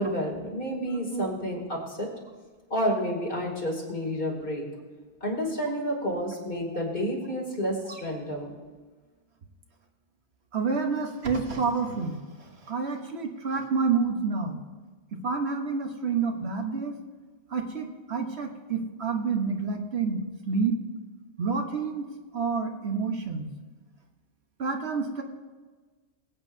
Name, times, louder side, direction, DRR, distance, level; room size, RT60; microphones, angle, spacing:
voice 1, 0.0-2.1 2.7-4.6 5.2-8.5, equal, 50° left, -2 dB, 3.0 m, -30 dB
voice 2, 10.5-12.2 12.7-14.6 15.2-16.9 17.5-20.7 21.4-22.0 22.3-23.5 24.6-25.2, right 5 dB, 65° right, 3 dB, 1.4 m, -28 dB
21.5 x 8.9 x 2.7 m, 1.4 s
omnidirectional pair, 1.2 m